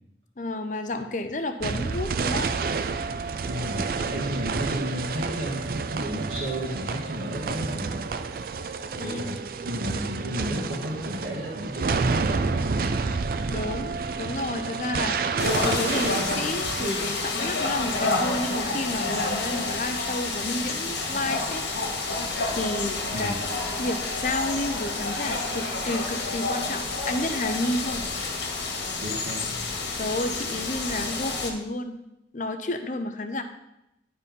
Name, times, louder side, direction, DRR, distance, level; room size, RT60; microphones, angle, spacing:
voice 1, 0.4-2.5 8.9-9.2 13.5-21.6 22.5-23.3 23.8-28.1 30.0-32.0 32.3-33.4, left 2 dB, 45° left, 7 dB, 0.7 m, -31 dB
sound 1, 1.6-16.9, right 4 dB, 55° right, 0.4 m, -29 dB
voice 2, 3.5-8.0 9.0-9.4 9.6-13.1 23.1-23.4 29.0-29.6, equal, 90° right, -6 dB, 1.7 m, -33 dB
sound 2, 15.4-31.5, left 3 dB, 85° left, 1.7 m, -29 dB
9.9 x 4.4 x 5.3 m, 0.88 s
head